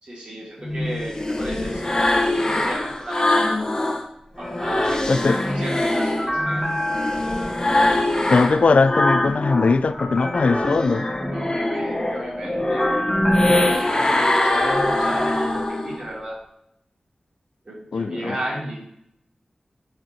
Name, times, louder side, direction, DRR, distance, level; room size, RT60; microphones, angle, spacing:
voice 1, 0.0-3.4 4.4-6.6 11.3-12.9 13.8-16.4 17.6-18.9, right 1 dB, 55° right, -6 dB, 2.7 m, -34 dB
sound 1, 0.6-4.0 4.4-9.8 10.2-16.0, left 1 dB, 30° left, 0.9 m, -23 dB
sound 2, 4.4-15.7, left 1 dB, 10° left, 1.5 m, -31 dB
voice 2, 5.1-5.4 8.3-11.1 17.9-18.4, left 4 dB, 70° left, 13 dB, 0.3 m, -19 dB
9.1 x 4.4 x 2.7 m, 0.76 s
cardioid pair, 50°, 2 cm